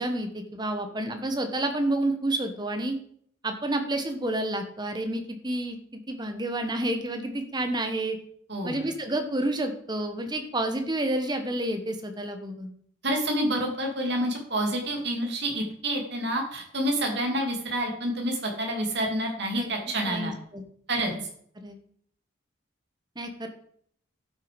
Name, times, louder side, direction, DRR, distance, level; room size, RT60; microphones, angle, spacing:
voice 1, 0.0-2.9 3.4-5.8 6.1-8.2 8.6-12.7 19.5-19.7 20.0-20.6 21.1-21.2 21.6-21.8 23.1-23.5, right 1 dB, 20° right, 6 dB, 1.2 m, -29 dB
voice 2, 8.5-8.8 13.0-20.3 20.9-21.1, right 1 dB, 55° right, 1 dB, 2.9 m, -28 dB
12.0 x 6.5 x 5.2 m, 0.63 s
head